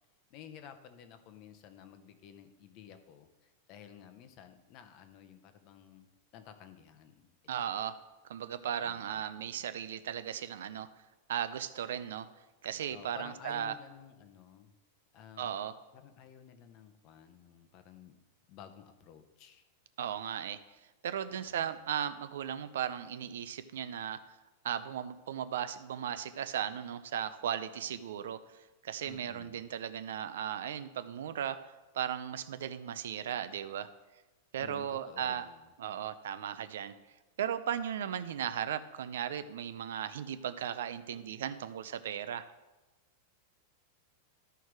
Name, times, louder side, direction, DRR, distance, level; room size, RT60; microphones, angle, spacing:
voice 1, 0.3-7.3 7.5-7.7 8.8-9.2 12.9-14.7 15.1-15.5 15.9-18.2 18.5-19.7 21.3-21.8 29.0-29.7 34.6-35.7, left 9 dB, 30° left, 8 dB, 0.7 m, -53 dB
voice 2, 7.5-8.0 8.3-10.9 11.3-12.3 12.6-13.7 15.4-15.7 20.0-20.6 21.0-24.2 24.6-28.4 28.8-31.6 31.9-33.9 34.5-35.5 35.8-36.9 37.4-42.5, right 9 dB, 80° right, 12 dB, 0.6 m, -36 dB
13.0 x 4.6 x 4.7 m, 1.1 s
supercardioid pair, 175°, 0 cm